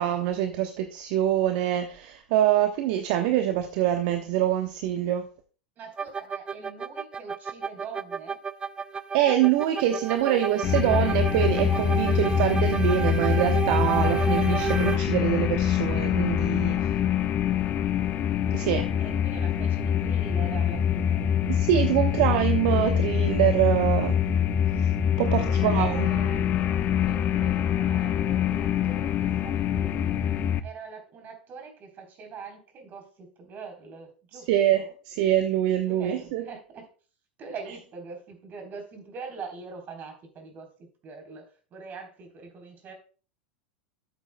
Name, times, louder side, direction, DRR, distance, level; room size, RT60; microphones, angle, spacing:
voice 1, 0.0-5.3 9.1-16.9 18.5-18.9 21.5-24.2 25.2-26.1 34.5-36.4, right 11 dB, 55° right, 7 dB, 0.9 m, -25 dB
voice 2, 5.8-8.4 16.7-16.9 19.0-21.3 25.4-26.5 27.0-30.2 30.6-34.9 35.9-36.9 37.4-40.7 41.0-42.9, right 5 dB, 35° right, 4 dB, 3.6 m, -43 dB
sound 1, 6.0-15.0, right 7 dB, 15° right, 0.4 m, -31 dB
sound 2, 10.6-30.6, left 9 dB, 35° left, 0.8 m, -25 dB
12.0 x 8.2 x 2.2 m, 0.39 s
hypercardioid pair, 95°, 5 cm